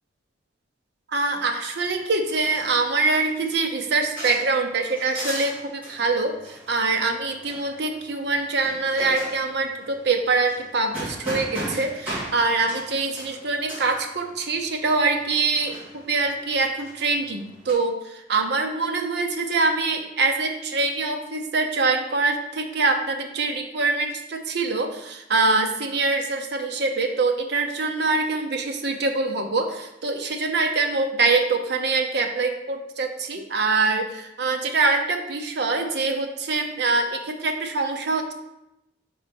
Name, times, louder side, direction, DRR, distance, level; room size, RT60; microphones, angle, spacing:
voice 1, 1.1-38.3, right 3 dB, 60° right, 4 dB, 0.7 m, -24 dB
sound 1, 1.8-17.7, right 1 dB, 10° right, 2.2 m, -39 dB
4.3 x 4.2 x 5.2 m, 0.89 s
head